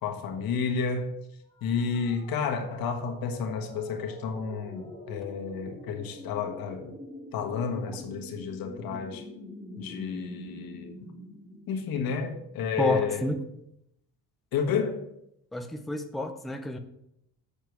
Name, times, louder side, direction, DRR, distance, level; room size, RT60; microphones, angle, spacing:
voice 1, 0.0-1.1 1.6-6.9 7.3-9.3 9.8-11.0 11.7-13.2 14.5-15.1, left 6 dB, 70° left, 1.5 m, -31 dB
sound 1, 1.5-13.3, left 1 dB, 15° left, 2.4 m, -46 dB
voice 2, 12.8-13.4 15.5-16.8, left 1 dB, ahead, 0.5 m, -30 dB
7.9 x 7.0 x 4.6 m
cardioid pair, 150°, 36 cm